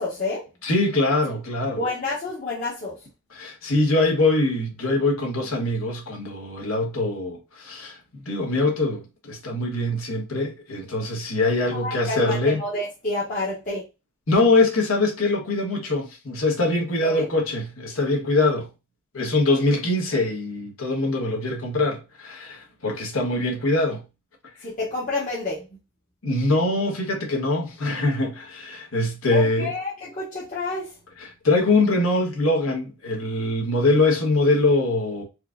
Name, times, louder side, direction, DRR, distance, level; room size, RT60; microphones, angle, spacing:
voice 1, 0.0-0.5 1.7-3.1 11.7-13.8 17.0-17.3 24.6-25.7 29.3-31.0, left 2 dB, 40° left, 1.0 m, -29 dB
voice 2, 0.6-1.8 3.3-8.0 8.2-12.6 14.3-18.7 19.1-24.0 26.2-29.7 31.2-35.2, left 2 dB, 80° left, 1.3 m, -23 dB
4.4 x 2.5 x 2.2 m
head